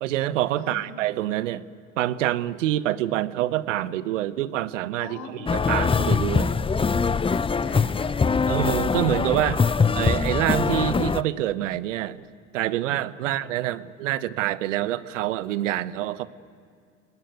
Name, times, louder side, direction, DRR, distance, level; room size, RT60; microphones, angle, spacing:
voice 1, 0.0-1.6 2.0-6.5 8.5-9.6 9.9-12.2 12.5-16.3, right 13 dB, 80° right, 16 dB, 1.1 m, -26 dB
voice 2, 0.6-1.1 5.0-5.9 6.3-6.7 7.3-8.6 13.2-13.5, left 5 dB, 50° left, 9 dB, 4.2 m, -43 dB
sound 1, 5.5-11.2, left 5 dB, 15° left, 0.7 m, -23 dB
29.0 x 19.5 x 9.5 m, 2.3 s
hypercardioid pair, 75°, 36 cm